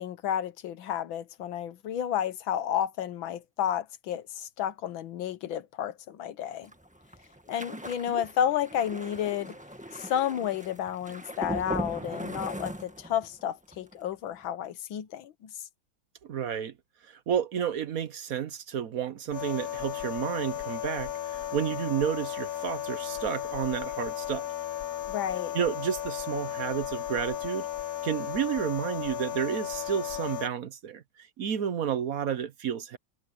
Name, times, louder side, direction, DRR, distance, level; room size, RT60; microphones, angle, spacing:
voice 1, 0.0-6.7 7.5-9.6 9.9-15.5 25.1-25.6, left 10 dB, 75° left, 1.7 m, -31 dB
sound 1, 6.6-13.4 13.7-14.0 14.3-14.4, equal, 5° right, 1.2 m, -39 dB
voice 2, 16.2-16.7 17.0-24.5 25.5-27.7 28.0-33.0, right 8 dB, 55° right, 1.1 m, -31 dB
sound 2, 19.3-30.5, left 12 dB, 60° left, 1.0 m, -35 dB
omnidirectional pair, 2.2 m